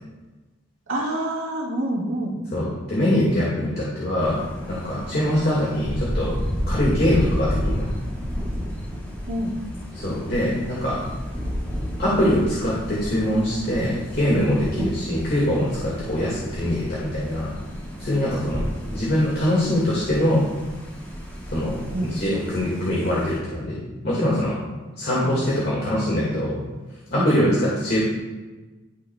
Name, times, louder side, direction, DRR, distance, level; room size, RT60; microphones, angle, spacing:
voice 1, 0.9-2.4 9.3-9.6 14.8-14.9 21.9-22.2 25.2-25.8 27.2-27.3, right 1 dB, 80° right, -3 dB, 1.7 m, -27 dB
voice 2, 2.5-4.4 4.7-6.3 6.7-7.9 9.9-11.0 12.0-17.5 18.0-18.6 18.9-20.5 21.5-21.8 22.1-23.8 24.0-24.6 25.0-26.6 27.1-28.0, left 1 dB, 50° left, -6 dB, 1.7 m, -23 dB
Thunder, 4.2-23.4, equal, 10° left, 1.3 m, -32 dB
12.0 x 5.6 x 2.2 m, 1.2 s
head